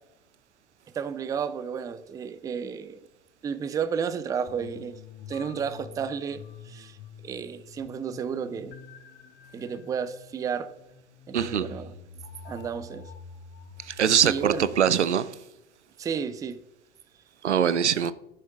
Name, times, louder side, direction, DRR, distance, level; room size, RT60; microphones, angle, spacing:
voice 1, 0.9-3.0 3.4-5.0 5.3-7.0 7.2-8.8 9.5-10.7 11.3-11.9 12.4-13.1 14.2-14.7 16.0-16.6, right 7 dB, 10° right, 0.4 m, -32 dB
sound 1, 4.5-14.8, left 5 dB, 30° left, 0.8 m, -46 dB
voice 2, 11.3-11.7 13.9-15.4 17.4-18.1, right 8 dB, 85° right, 0.5 m, -23 dB
11.0 x 6.5 x 3.6 m
figure-of-eight pair, 80°, 34 cm